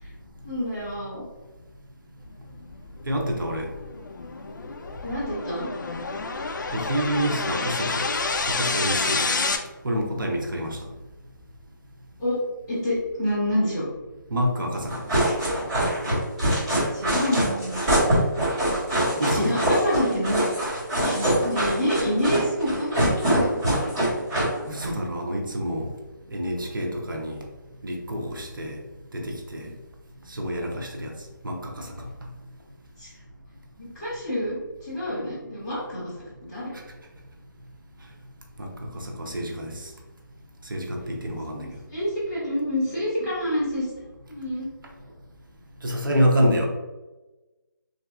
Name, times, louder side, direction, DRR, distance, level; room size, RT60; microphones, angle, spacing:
voice 1, 0.4-1.2 5.0-5.7 12.2-12.4 12.7-13.8 16.9-17.9 19.3-20.4 21.0-23.6 33.0-33.1 33.8-36.1 36.5-36.7 41.3-43.9 44.3-44.7, equal, 5° left, -14 dB, 0.6 m, -27 dB
sound 1, 2.6-9.6, left 3 dB, 65° left, 0.4 m, -29 dB
voice 2, 3.0-3.7 6.7-8.0 8.5-9.2 9.8-10.8 14.3-15.2 19.2-19.7 24.6-25.9 26.3-27.4 27.8-28.8 29.1-29.7 30.3-31.1 31.4-31.9 38.6-39.9 40.7-41.7 45.8-46.7, equal, 75° right, 1 dB, 0.8 m, -27 dB
sound 2, 14.9-24.9, right 1 dB, 20° right, 1.4 m, -23 dB
3.3 x 2.6 x 2.3 m, 1.1 s
hypercardioid pair, 175°, 11 cm